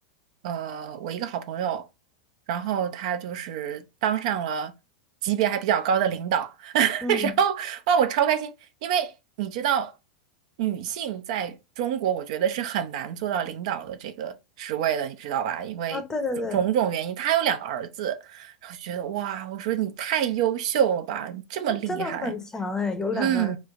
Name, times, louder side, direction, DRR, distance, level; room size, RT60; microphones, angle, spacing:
voice 1, 0.4-1.8 2.5-4.7 5.2-8.5 8.8-9.9 10.6-16.0 16.4-22.3 23.1-23.6, right 9 dB, 60° right, 0.4 m, -27 dB
voice 2, 7.0-7.4 15.9-16.7 21.7-23.6, left 3 dB, 15° left, 0.7 m, -30 dB
3.1 x 2.0 x 3.5 m
hypercardioid pair, 100°, 4 cm